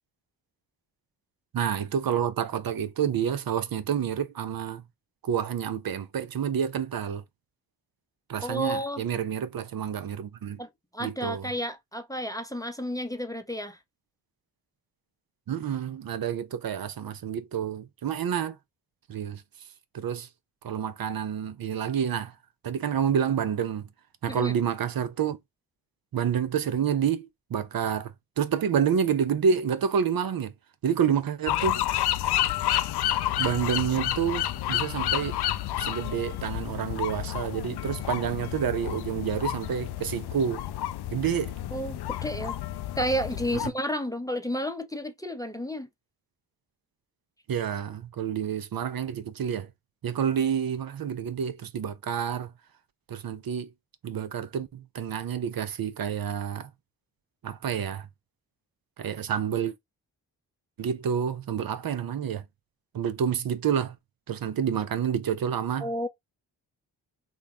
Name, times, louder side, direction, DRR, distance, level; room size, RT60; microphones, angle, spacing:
voice 1, 1.5-4.8 5.2-7.2 8.3-10.6 11.0-11.5 15.5-18.6 19.1-19.4 19.9-20.3 20.6-22.3 22.6-23.9 24.2-25.4 26.1-30.5 30.8-31.8 33.4-35.4 35.8-40.6 41.1-41.5 43.6-43.7 47.5-49.7 50.0-52.5 53.1-53.7 54.0-56.7 57.4-58.1 59.0-59.7 60.8-62.4 62.9-64.0 64.3-65.9, right 8 dB, 50° right, 0.7 m, -28 dB
voice 2, 8.4-9.0 10.6-10.7 10.9-13.8 24.3-24.5 41.7-42.6 43.0-45.9 65.8-66.1, equal, 10° left, 0.8 m, -31 dB
sound 1, 31.5-43.7, left 13 dB, 55° left, 0.5 m, -30 dB
3.7 x 2.3 x 3.5 m
supercardioid pair, 45°, 46 cm